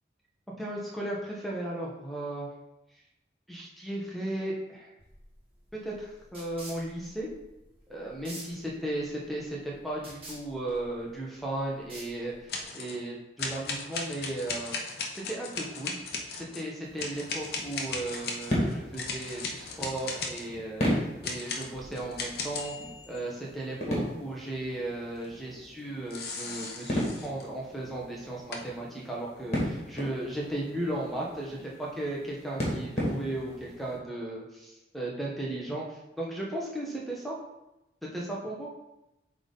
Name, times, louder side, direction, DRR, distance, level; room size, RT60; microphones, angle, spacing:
voice 1, 0.6-2.5 3.5-4.9 5.7-7.3 7.9-14.8 15.1-15.9 16.3-20.9 21.2-22.7 23.1-37.3 38.1-38.7, right 1 dB, ahead, -4 dB, 1.3 m, -35 dB
sound 1, 5.0-12.6, right 2 dB, 30° right, 1.8 m, -49 dB
sound 2, 12.5-13.0 13.4-16.6 17.0-20.5 21.2-23.2 26.1-27.5 28.5-28.6, left 4 dB, 60° left, 0.9 m, -37 dB
sound 3, 16.8-34.0, equal, 35° left, 2.2 m, -36 dB
8.0 x 3.8 x 4.0 m, 0.92 s
head